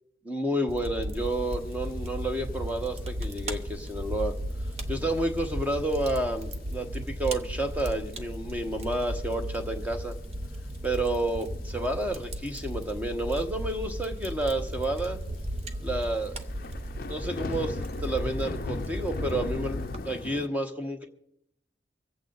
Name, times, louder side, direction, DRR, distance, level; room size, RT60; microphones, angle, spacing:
voice 1, 0.2-4.3 4.9-10.1 10.8-15.2 15.8-16.3 17.1-21.0, right 1 dB, 10° right, 4 dB, 1.1 m, -30 dB
Fire, 0.7-20.0, equal, 35° right, 0.8 m, -35 dB
sound 1, 1.8-1.9 2.2-2.6 3.2-3.4 4.0-4.1 4.8-4.9 5.2-5.3 5.5-5.6 6.7-7.0 7.3-7.4 8.3-8.4 9.0-9.4 9.8-9.9 10.5-11.2 12.2-12.5 12.8-12.9 13.2-13.3 13.5-13.6 14.2-14.3 14.7-14.8 15.3-20.5, left 3 dB, 50° left, 0.5 m, -38 dB
25.0 x 8.4 x 3.9 m, 0.77 s
head